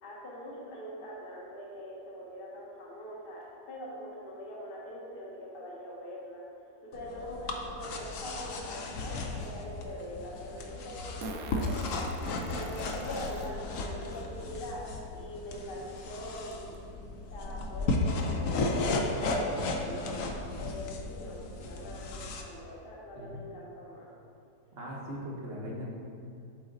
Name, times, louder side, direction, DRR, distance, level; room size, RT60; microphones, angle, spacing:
voice 1, 0.0-6.4 6.8-11.9 12.5-14.9 15.1-16.9 17.2-24.1, left 1 dB, 40° left, -4 dB, 1.0 m, -43 dB
sound 1, 6.9-22.4, left 2 dB, 65° left, 0.8 m, -35 dB
Fart, 8.5-8.6 11.2-13.5 14.1-14.2 15.5-15.6 16.0-16.1 16.5-16.8, right 3 dB, 70° right, 0.9 m, -43 dB
voice 2, 24.7-25.9, equal, 45° right, -2 dB, 0.9 m, -39 dB
7.8 x 4.0 x 3.8 m, 2.5 s
omnidirectional pair, 1.8 m